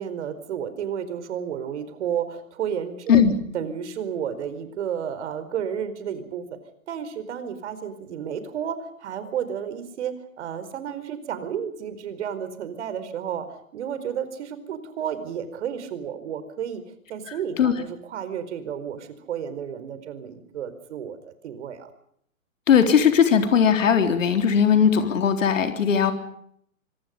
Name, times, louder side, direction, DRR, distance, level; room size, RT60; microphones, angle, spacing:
voice 1, 0.0-3.3 3.5-6.6 6.9-16.8 17.1-21.9, right 8 dB, 55° right, 12 dB, 4.8 m, -32 dB
voice 2, 22.7-26.1, left 7 dB, 65° left, 6 dB, 3.9 m, -18 dB
25.5 x 25.5 x 5.3 m, 0.69 s
hypercardioid pair, 130°, 41 cm